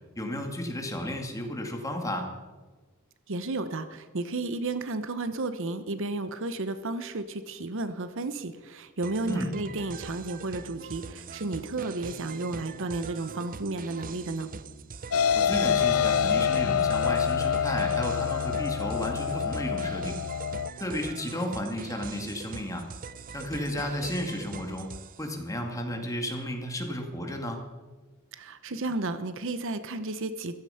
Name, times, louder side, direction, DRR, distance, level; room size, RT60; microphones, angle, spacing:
voice 1, 0.2-2.3 9.3-9.5 15.3-20.2 20.8-22.9 23.3-24.9 25.2-27.6, left 1 dB, 15° left, 3 dB, 2.3 m, -33 dB
voice 2, 3.3-14.5 28.3-30.5, right 2 dB, 65° right, 11 dB, 0.9 m, -33 dB
sound 1, 9.0-25.3, right 5 dB, 40° right, 0.6 m, -42 dB
sound 2, 15.1-20.7, left 8 dB, 85° left, 0.5 m, -26 dB
15.0 x 13.5 x 5.8 m, 1.3 s
head